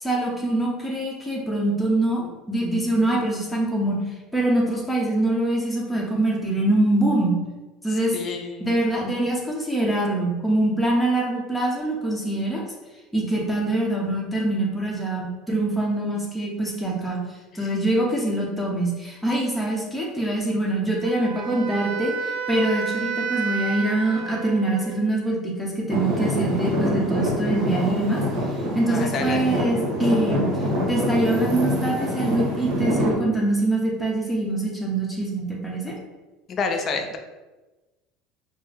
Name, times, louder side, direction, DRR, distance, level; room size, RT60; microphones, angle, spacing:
voice 1, 0.0-4.0 4.3-7.4 7.8-8.2 8.6-12.6 13.1-17.2 17.5-28.2 28.7-30.5 30.9-36.0, right 1 dB, 5° left, -3 dB, 0.9 m, -24 dB
voice 2, 8.1-8.7 17.6-17.7 28.8-29.5 36.5-37.2, left 4 dB, 40° left, 5 dB, 0.5 m, -28 dB
Wind instrument woodwind instrument, 21.0-25.1, right 6 dB, 80° right, 0.4 m, -30 dB
Traffic noise roadway noise / Engine, 25.9-33.1, equal, 55° right, 1.2 m, -25 dB
4.4 x 2.1 x 3.4 m, 1.1 s
supercardioid pair, 125°, 0 cm